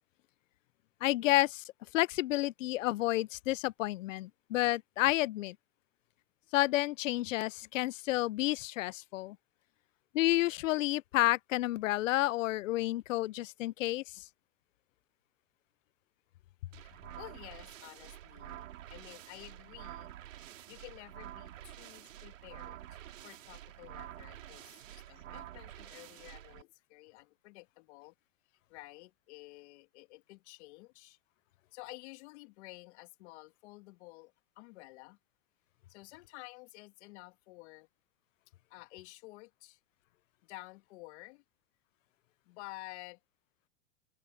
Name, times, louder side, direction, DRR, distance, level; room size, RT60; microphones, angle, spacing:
voice 1, 1.0-1.6 1.9-5.6 6.5-9.4 10.1-14.2, left 17 dB, 90° left, 0.5 m, -30 dB
sound 1, 16.7-26.6, right 12 dB, 90° right, 2.9 m, -49 dB
voice 2, 16.8-20.1 20.7-28.1 28.7-31.2 31.7-35.2 35.9-37.9 38.7-39.8 40.4-41.4 42.5-43.2, left 22 dB, 65° left, 2.6 m, -51 dB
open air
supercardioid pair, 120°, 37 cm